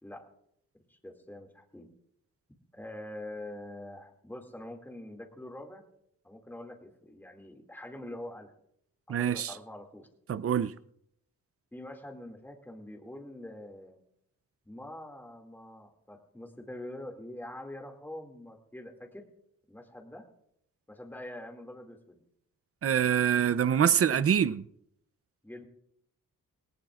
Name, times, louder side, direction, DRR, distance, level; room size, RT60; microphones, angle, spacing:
voice 1, 0.9-1.9 2.7-5.8 6.2-8.5 9.1-10.1 11.7-14.0 14.7-19.2 19.7-20.2 20.9-22.2 25.4-25.6, left 1 dB, 5° left, 2.3 m, -44 dB
voice 2, 9.1-9.5 10.3-10.7 22.8-24.6, right 8 dB, 45° right, 0.6 m, -25 dB
19.0 x 18.5 x 2.5 m
cardioid pair, 85°, 34 cm